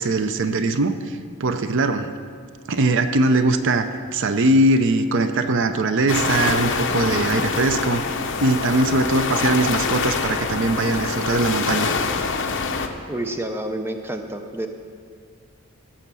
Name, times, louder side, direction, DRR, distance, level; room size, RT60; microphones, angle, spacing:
voice 1, 0.0-2.1 2.7-8.0 8.4-11.9, right 2 dB, 60° right, 9 dB, 0.6 m, -21 dB
sound 1, 6.1-12.9, left 4 dB, 55° left, 0.9 m, -25 dB
voice 2, 13.1-14.7, right 1 dB, 10° right, 5 dB, 0.7 m, -29 dB
15.5 x 7.3 x 6.1 m, 2.1 s
head